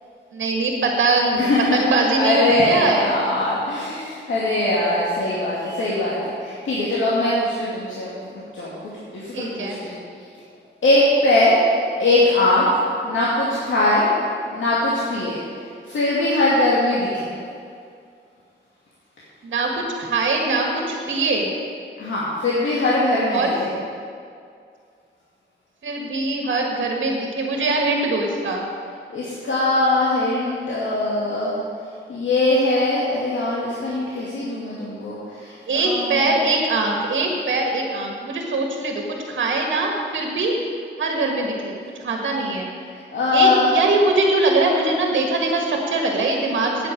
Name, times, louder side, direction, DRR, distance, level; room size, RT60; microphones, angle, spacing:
voice 1, 0.3-3.1 9.3-9.8 19.4-21.5 23.3-23.5 25.8-28.6 35.7-40.6 41.0-41.8 42.0-42.7 43.3-46.9, right 3 dB, 85° right, 1 dB, 1.7 m, -22 dB
voice 2, 1.3-8.1 8.5-10.0 10.8-11.5 12.0-12.7 13.0-14.1 14.5-15.4 15.8-17.3 22.0-23.7 29.1-31.6 32.1-36.3 43.1-43.7, left 2 dB, 80° left, -7 dB, 2.4 m, -21 dB
9.1 x 8.5 x 8.5 m, 2.3 s
wide cardioid pair, 100°, 19 cm